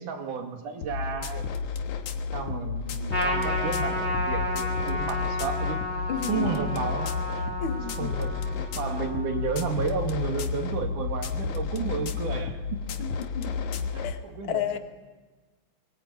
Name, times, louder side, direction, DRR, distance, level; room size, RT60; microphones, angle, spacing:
voice 1, 0.0-1.5 2.3-5.8 6.3-7.2 8.0-12.9 13.9-14.6, right 5 dB, 75° right, 3 dB, 4.0 m, -32 dB
sound 1, 0.8-14.1, left 5 dB, 75° left, 2.7 m, -31 dB
Trumpet, 3.1-9.8, left 1 dB, 20° left, 4.2 m, -32 dB
voice 2, 6.1-6.6 7.6-8.1 13.0-13.5 14.0-14.2 14.5-14.8, left 9 dB, 50° left, 7 dB, 2.1 m, -32 dB
23.5 x 21.5 x 9.0 m, 1.3 s
omnidirectional pair, 3.6 m